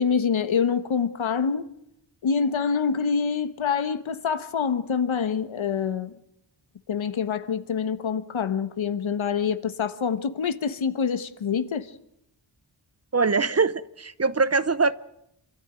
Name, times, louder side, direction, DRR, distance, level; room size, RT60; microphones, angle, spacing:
voice 1, 0.0-1.7 2.2-6.1 6.9-11.9, left 6 dB, 85° left, 1.4 m, -26 dB
voice 2, 13.1-14.9, right 4 dB, 35° right, 0.8 m, -22 dB
27.5 x 13.5 x 9.0 m
wide cardioid pair, 130°, 46 cm